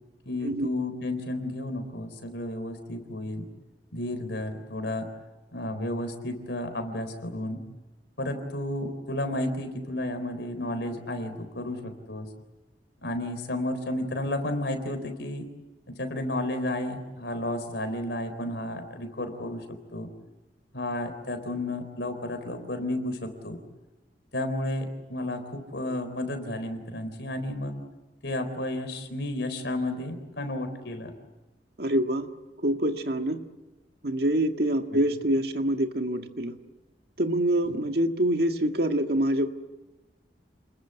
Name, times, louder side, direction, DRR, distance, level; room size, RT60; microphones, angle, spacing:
voice 1, 0.3-3.5 3.9-5.1 5.5-7.6 8.2-12.3 13.0-15.5 15.9-19.6 19.9-20.1 20.7-23.6 24.3-27.8 28.2-31.1 34.9-35.0 37.7-37.8, left 1 dB, 75° left, 7 dB, 4.0 m, -32 dB
voice 2, 31.8-32.3 32.6-33.4 34.0-36.6 37.2-39.5, right 1 dB, 60° right, 5 dB, 1.8 m, -25 dB
29.0 x 21.0 x 8.2 m, 1.1 s
head